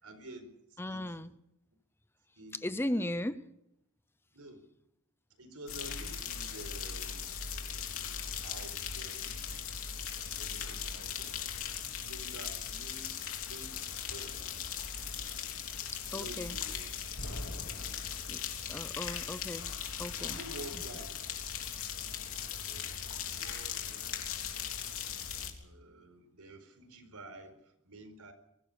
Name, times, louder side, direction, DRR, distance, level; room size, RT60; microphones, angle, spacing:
voice 1, 0.0-1.3 2.4-3.3 4.3-4.6 5.4-7.3 8.0-9.5 10.4-11.4 12.0-13.2 13.4-13.7 14.1-14.4 16.1-17.6 19.1-19.4 20.3-21.3 22.4-23.0 23.4-24.3 25.6-28.3, right 1 dB, 80° right, 4.7 m, -50 dB
voice 2, 0.8-1.3 2.5-3.4 15.7-16.6 18.3-18.4 18.7-19.7 20.0-20.4, left 1 dB, 10° left, 0.7 m, -37 dB
sound 1, 5.7-25.5, left 7 dB, 65° left, 3.4 m, -39 dB
23.5 x 17.5 x 6.9 m
head